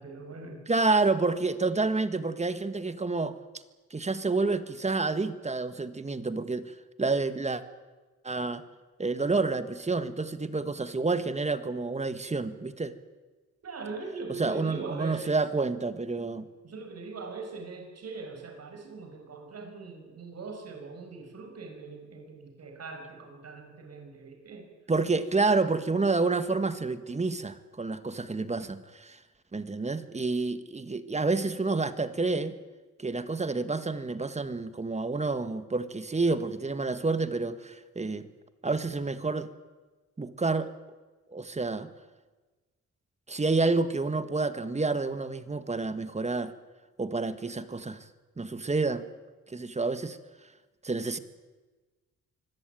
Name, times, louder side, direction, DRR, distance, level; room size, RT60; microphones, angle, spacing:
voice 1, 0.0-0.6 13.6-15.4 16.2-16.3 16.6-24.7, right 4 dB, 55° right, 4 dB, 5.4 m, -41 dB
voice 2, 0.7-3.3 3.9-6.7 7.0-7.6 8.2-8.6 9.0-12.9 14.4-16.5 24.9-29.2 29.5-32.5 33.0-38.3 38.6-39.5 40.2-40.7 41.3-41.9 43.3-46.5 47.0-48.0 48.4-49.1 49.5-50.2 50.8-51.2, right 3 dB, 20° right, 11 dB, 1.6 m, -29 dB
24.5 x 16.5 x 9.2 m, 1.2 s
cardioid pair, 95°, 31 cm